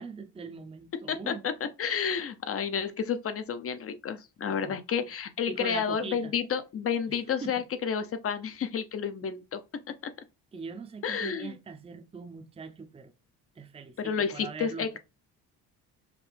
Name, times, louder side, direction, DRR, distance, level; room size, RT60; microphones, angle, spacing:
voice 1, 0.0-1.5 4.5-4.8 5.5-6.3 7.1-7.5 10.5-13.1 13.6-15.0, right 4 dB, 15° right, 0.5 m, -41 dB
voice 2, 1.1-9.6 10.0-10.1 11.0-11.5 14.0-15.0, left 7 dB, 35° left, 0.6 m, -31 dB
5.1 x 2.8 x 3.3 m
cardioid pair, 90°, 39 cm